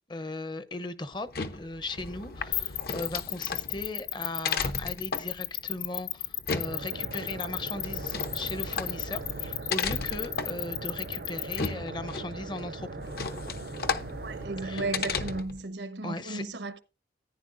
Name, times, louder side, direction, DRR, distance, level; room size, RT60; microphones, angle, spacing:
voice 1, 0.1-12.9 14.6-14.8 15.1-15.2 16.0-16.4, left 2 dB, 25° left, 0.7 m, -38 dB
sound 1, 1.1-15.6, left 5 dB, 55° left, 0.8 m, -36 dB
sound 2, 2.5-11.7, left 15 dB, 85° left, 0.6 m, -33 dB
sound 3, 6.6-15.4, right 3 dB, 60° right, 0.6 m, -40 dB
voice 2, 14.2-16.8, right 2 dB, 90° right, 1.1 m, -35 dB
14.5 x 10.0 x 2.5 m
head